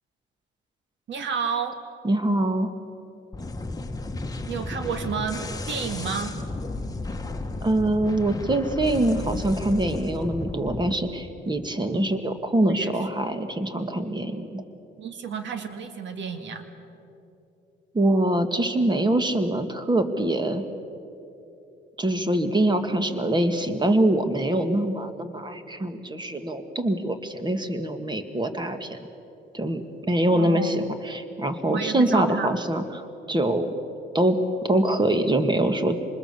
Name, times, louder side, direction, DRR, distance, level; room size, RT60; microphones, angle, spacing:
voice 1, 1.1-1.8 4.5-6.4 11.9-12.1 12.7-13.1 15.0-16.7 30.3-30.8 31.7-32.5, right 6 dB, 70° right, 7 dB, 2.3 m, -31 dB
voice 2, 2.0-2.7 7.6-14.6 17.9-20.6 22.0-29.0 29.5-33.7 34.1-34.4 34.6-36.0, right 1 dB, 20° right, 8 dB, 1.9 m, -24 dB
sound 1, 3.3-11.0, left 2 dB, 20° left, 1.5 m, -33 dB
26.0 x 21.0 x 7.0 m, 2.9 s
cardioid pair, 90°, 20 cm